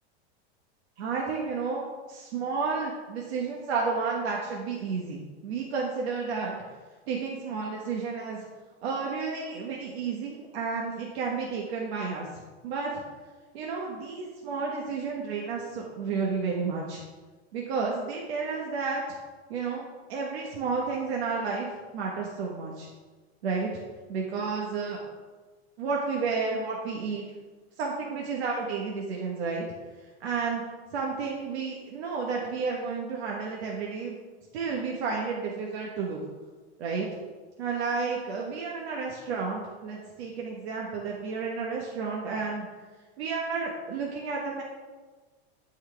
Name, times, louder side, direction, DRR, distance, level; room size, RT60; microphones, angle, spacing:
voice 1, 1.0-6.5 7.1-8.5 8.8-12.9 13.5-17.0 17.5-19.0 19.5-22.9 23.4-23.7 24.1-25.0 25.8-27.2 27.8-29.6 30.2-30.6 30.9-34.1 34.5-36.2 36.8-37.1 37.6-42.6 43.2-44.6, right 4 dB, 70° right, -2 dB, 1.4 m, -31 dB
12.0 x 4.6 x 3.4 m, 1.3 s
supercardioid pair, 145°, 33 cm